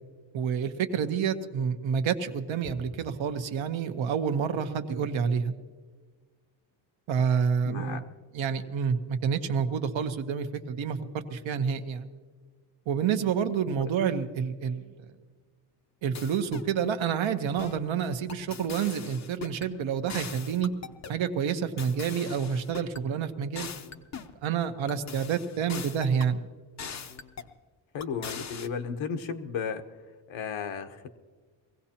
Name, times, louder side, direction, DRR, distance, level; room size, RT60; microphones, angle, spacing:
voice 1, 0.3-5.5 7.1-8.0 8.3-12.1 12.9-14.9 16.0-20.7 21.1-23.7 24.4-26.4, right 7 dB, 70° right, 7 dB, 1.1 m, -28 dB
voice 2, 7.6-8.0 13.8-13.9 27.9-29.8 30.3-31.1, left 6 dB, 70° left, 7 dB, 1.1 m, -34 dB
sound 1, 16.1-16.7 17.6-17.9 18.3-19.7 20.1-21.2 21.8-23.0 23.6-24.4 24.9-26.3 26.8-27.5 28.0-28.7, left 6 dB, 35° left, 0.7 m, -41 dB
23.0 x 16.5 x 2.9 m, 1.5 s
cardioid pair, 145°, 49 cm